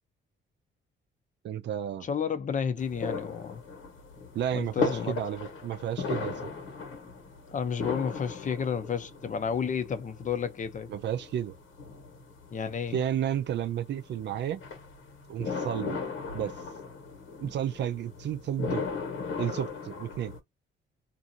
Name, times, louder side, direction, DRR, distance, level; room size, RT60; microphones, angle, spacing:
voice 1, 1.4-2.1 4.3-6.5 10.9-11.5 12.9-14.6 15.3-16.0 16.3-16.5 17.4-18.9 19.4-20.3, right 10 dB, 60° right, 0.5 m, -32 dB
voice 2, 2.0-3.6 4.5-5.1 7.5-10.9 12.5-13.0, left 7 dB, 40° left, 0.6 m, -31 dB
sound 1, 2.8-20.4, left 4 dB, 85° left, 1.3 m, -37 dB
2.6 x 2.4 x 2.7 m
cardioid pair, 90°, 20 cm